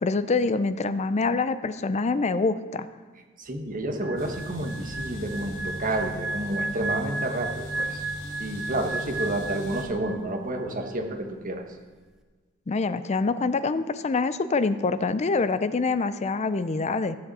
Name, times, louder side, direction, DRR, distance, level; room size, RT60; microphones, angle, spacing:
voice 1, 0.0-2.9 12.7-17.2, left 3 dB, 35° left, 13 dB, 0.5 m, -25 dB
voice 2, 3.4-8.0 8.4-11.6, right 1 dB, 40° right, 3 dB, 1.4 m, -30 dB
sound 1, 4.0-10.4 10.6-10.9, right 2 dB, 5° right, 0.8 m, -34 dB
sound 2, 4.2-9.8, equal, 65° left, 3.8 m, -39 dB
14.5 x 7.7 x 4.2 m, 1.4 s
head